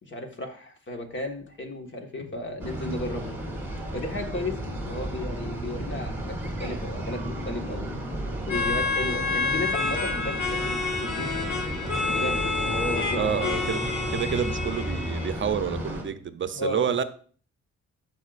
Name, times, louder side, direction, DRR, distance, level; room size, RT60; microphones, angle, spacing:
voice 1, 0.0-3.3 3.9-4.6 4.8-7.9 8.5-11.5 12.1-13.5 16.5-16.9, left 2 dB, 40° left, 4 dB, 1.6 m, -34 dB
sound 1, 2.6-16.0, right 1 dB, 5° right, 2.3 m, -33 dB
sound 2, 8.5-15.3, left 4 dB, 85° left, 2.2 m, -29 dB
voice 2, 13.1-13.8 14.1-17.0, right 8 dB, 40° right, 11 dB, 0.7 m, -28 dB
12.5 x 5.7 x 2.5 m, 0.44 s
cardioid pair, 90°, 30 cm